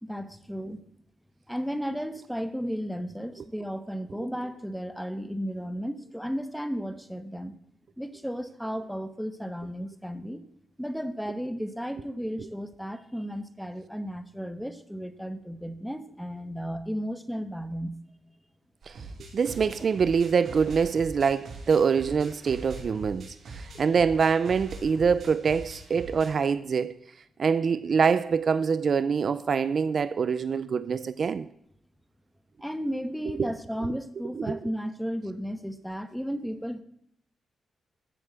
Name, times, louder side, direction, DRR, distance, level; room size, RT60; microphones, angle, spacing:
voice 1, 0.0-0.8 1.5-7.5 8.0-10.4 10.8-18.0 23.7-23.8 32.6-36.8, equal, ahead, 1.1 m, -34 dB
sound 1, 18.8-26.3, right 3 dB, 60° right, 4.7 m, -43 dB
voice 2, 19.3-27.0 27.4-31.5 33.4-33.5 34.3-34.6, right 6 dB, 40° right, 0.5 m, -25 dB
14.0 x 8.0 x 8.0 m
wide cardioid pair, 150°, 0 cm